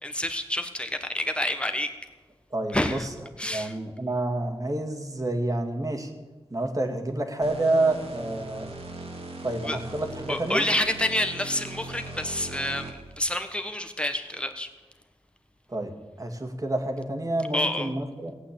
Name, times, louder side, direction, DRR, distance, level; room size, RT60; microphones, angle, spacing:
voice 1, 0.0-1.9 2.7-3.1 3.4-3.7 9.6-9.8 10.3-14.7 17.5-17.9, left 1 dB, 10° left, 6 dB, 1.3 m, -28 dB
voice 2, 2.5-3.1 3.4-6.1 6.5-8.7 9.4-10.7 15.7-18.3, right 2 dB, 35° right, 4 dB, 2.0 m, -28 dB
sound 1, 7.4-13.2, right 2 dB, 75° right, 2.2 m, -39 dB
16.5 x 8.7 x 8.8 m, 1.2 s
wide cardioid pair, 80°, 10 cm